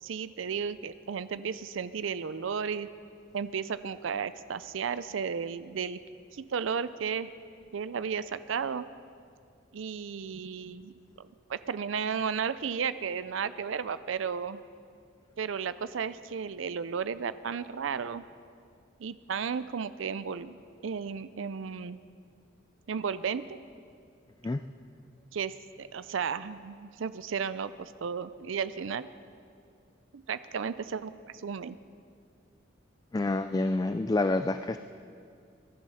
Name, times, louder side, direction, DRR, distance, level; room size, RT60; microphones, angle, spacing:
voice 1, 0.0-2.9 3.3-6.0 6.3-7.3 7.7-8.8 9.7-14.6 15.4-18.2 19.0-20.6 20.8-22.0 22.9-23.6 25.3-29.1 30.1-31.8, right 6 dB, 80° right, 14 dB, 0.5 m, -34 dB
voice 2, 33.1-34.8, left 2 dB, 20° left, 10 dB, 0.3 m, -28 dB
22.5 x 11.0 x 5.7 m, 2.3 s
head